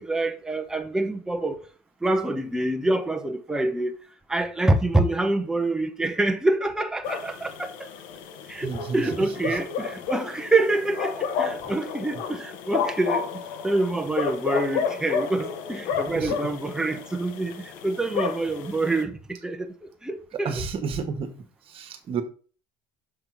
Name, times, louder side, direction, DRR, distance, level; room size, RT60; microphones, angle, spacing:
voice 1, 0.0-1.6 2.0-3.9 4.3-7.7 8.5-13.2 13.6-19.7 20.0-20.5, right 2 dB, 5° right, 0.9 m, -26 dB
sound 1, 7.0-19.0, left 6 dB, 75° left, 1.2 m, -31 dB
voice 2, 8.6-9.6 16.1-16.5 20.3-21.3 21.7-22.2, right 5 dB, 40° right, 1.5 m, -31 dB
6.9 x 3.6 x 5.9 m
cardioid pair, 135°, 14 cm